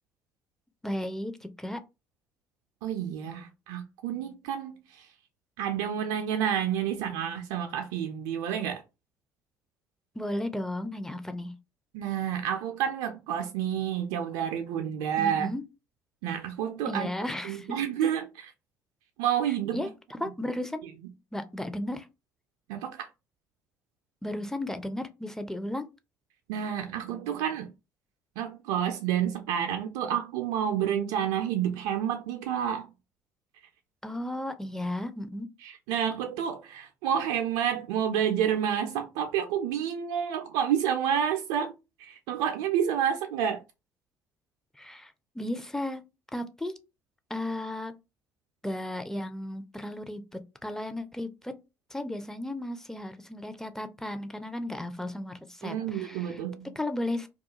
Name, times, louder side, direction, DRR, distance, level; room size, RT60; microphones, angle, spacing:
voice 1, 0.8-1.8 10.2-11.5 15.2-15.6 16.9-18.1 19.7-20.8 21.3-22.1 24.2-25.9 34.0-35.5 44.8-46.0 46.3-46.7 47.3-47.9 48.6-51.5 51.9-56.4 56.8-57.3, left 1 dB, 5° left, 0.4 m, -34 dB
voice 2, 2.8-5.1 5.6-8.8 11.9-15.5 16.2-17.1 17.4-18.5 19.2-19.9 20.8-20.9 22.7-23.1 26.5-27.7 28.4-32.9 35.6-41.7 42.0-43.6 55.6-56.7, right 9 dB, 65° right, 0.4 m, -29 dB
2.3 x 2.2 x 2.8 m
figure-of-eight pair, 55°, 8 cm